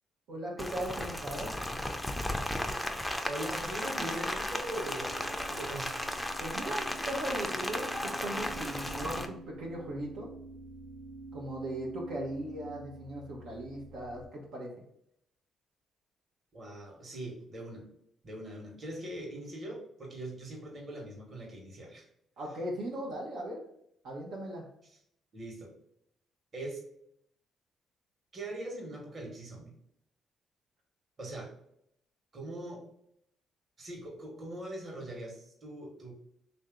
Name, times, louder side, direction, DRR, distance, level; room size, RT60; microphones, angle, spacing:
voice 1, 0.3-1.6 6.4-10.3 11.3-14.7 22.4-23.6 24.0-24.7, right 1 dB, 85° right, -3 dB, 1.0 m, -38 dB
Rain, 0.6-9.3, left 1 dB, 5° left, 0.4 m, -35 dB
voice 2, 3.3-6.0 16.5-17.8 18.2-22.1 25.3-25.7 26.5-26.8 28.3-29.7 31.2-31.5 32.3-32.8 33.8-36.1, right 1 dB, 40° right, -1 dB, 1.3 m, -41 dB
sound 1, 4.1-14.2, right 3 dB, 60° right, 0.5 m, -48 dB
3.3 x 2.7 x 3.6 m, 0.74 s
cardioid pair, 90°, 0 cm